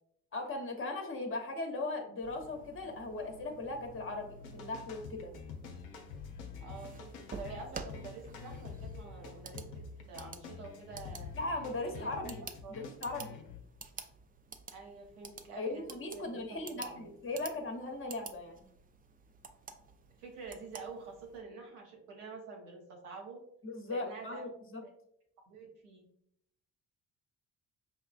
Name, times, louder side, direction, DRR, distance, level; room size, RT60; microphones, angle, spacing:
voice 1, 0.3-5.3 11.4-12.4 12.7-13.4 15.6-18.6 23.6-24.8, left 2 dB, 30° left, 4 dB, 0.9 m, -38 dB
sound 1, 2.2-21.4, right 4 dB, 20° right, 0.4 m, -51 dB
sound 2, 4.4-13.6, left 5 dB, 75° left, 0.7 m, -47 dB
voice 2, 6.6-7.1 7.4-9.7 10.1-11.3 11.8-12.8 14.7-15.8 16.1-17.1 20.2-23.4 23.9-24.5 24.8-24.9 25.5-26.0, right 4 dB, 85° right, 0 dB, 0.9 m, -47 dB
5.4 x 2.3 x 2.3 m, 0.73 s
hypercardioid pair, 45°, 43 cm